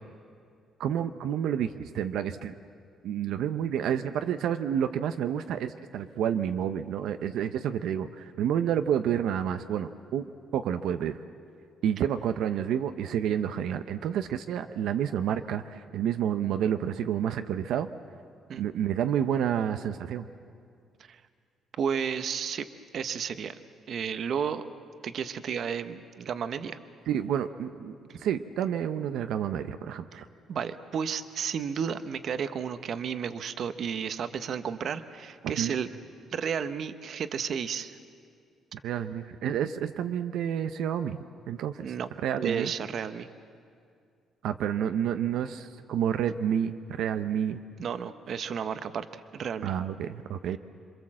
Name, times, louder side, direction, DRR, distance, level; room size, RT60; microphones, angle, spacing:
voice 1, 0.8-2.5 3.0-11.2 11.8-17.9 18.6-20.2 27.1-30.3 35.6-35.7 38.8-41.2 41.5-41.9 42.2-42.7 44.4-47.6 49.6-50.6, right 9 dB, 75° right, 9 dB, 0.8 m, -29 dB
voice 2, 21.8-22.7 22.9-23.6 23.9-24.7 25.0-26.8 28.1-28.2 30.5-35.9 36.3-38.0 41.8-42.1 42.4-43.3 47.8-49.7, right 7 dB, 50° right, 11 dB, 0.9 m, -32 dB
27.5 x 24.5 x 7.5 m, 2.3 s
cardioid pair, 155°, 0 cm